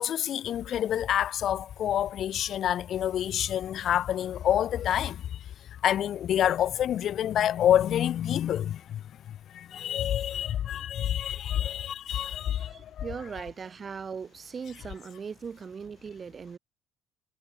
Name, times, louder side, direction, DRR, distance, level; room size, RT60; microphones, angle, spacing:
voice 1, 0.0-13.0, left 10 dB, 55° left, 0.4 m, -28 dB
voice 2, 12.3-16.6, right 6 dB, 40° right, 6.4 m, -39 dB
hypercardioid pair, 55°, 0 cm